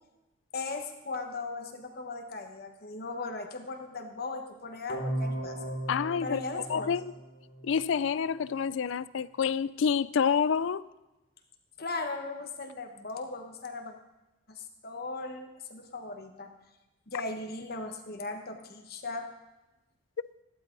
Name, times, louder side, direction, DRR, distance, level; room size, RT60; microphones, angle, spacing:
voice 1, 0.5-5.6 6.2-6.9 11.8-13.9 14.5-16.5 17.1-19.3, left 3 dB, 50° left, 4 dB, 1.2 m, -38 dB
sound 1, 4.9-7.9, right 1 dB, 85° left, 3.0 m, -36 dB
voice 2, 5.9-6.4 6.7-7.0 7.6-10.8, left 6 dB, 65° left, 18 dB, 0.4 m, -28 dB
15.0 x 12.0 x 4.0 m, 1.0 s
head